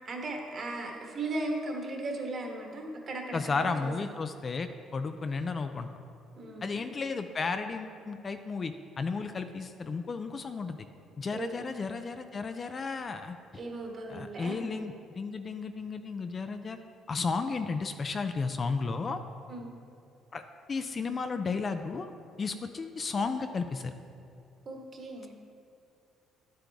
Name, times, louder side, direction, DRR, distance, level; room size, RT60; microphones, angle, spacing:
voice 1, 0.0-3.9 6.4-6.9 11.3-11.7 13.5-14.7 19.5-19.7 24.6-25.3, right 2 dB, 40° right, 1 dB, 1.4 m, -37 dB
voice 2, 3.3-5.9 6.6-10.9 11.2-13.4 14.1-16.8 17.1-19.2 20.3-20.4 20.7-22.1 22.4-23.9, left 4 dB, 30° left, 8 dB, 0.4 m, -33 dB
10.5 x 7.6 x 3.5 m, 2.6 s
cardioid pair, 130°, 0 cm